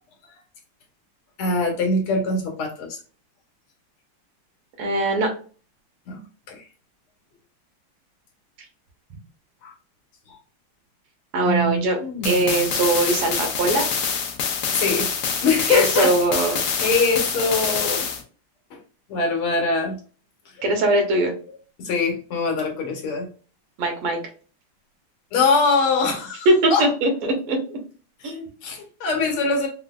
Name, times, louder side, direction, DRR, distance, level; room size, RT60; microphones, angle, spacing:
voice 1, 1.4-3.0 6.1-6.2 6.5-6.6 9.6-9.7 10.3-10.4 11.5-12.6 14.7-15.1 15.4-16.1 16.8-18.1 18.7-18.8 19.1-20.0 21.8-23.3 25.3-26.9 28.2-28.3 28.6-29.7, left 3 dB, 85° left, 2 dB, 1.9 m, -23 dB
voice 2, 4.8-5.3 11.3-12.0 12.3-13.9 15.7-16.6 20.6-21.3 23.8-24.2 26.5-27.6 28.2-28.5, right 2 dB, 90° right, 3 dB, 1.9 m, -21 dB
sound 1, 12.2-18.2, left 6 dB, 70° left, 1.3 m, -25 dB
4.8 x 2.0 x 2.3 m, 0.39 s
omnidirectional pair, 2.4 m